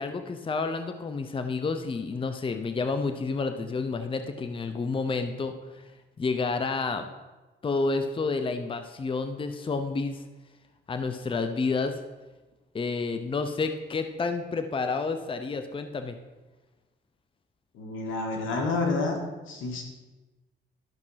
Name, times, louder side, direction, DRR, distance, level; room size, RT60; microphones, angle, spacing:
voice 1, 0.0-5.8 6.2-7.1 7.6-10.2 10.9-12.0 12.7-16.2, left 4 dB, 25° left, 8 dB, 0.7 m, -30 dB
voice 2, 17.7-19.2 19.5-19.8, left 3 dB, 80° left, 2 dB, 1.8 m, -29 dB
12.0 x 6.0 x 5.7 m, 1.2 s
cardioid pair, 90°, 20 cm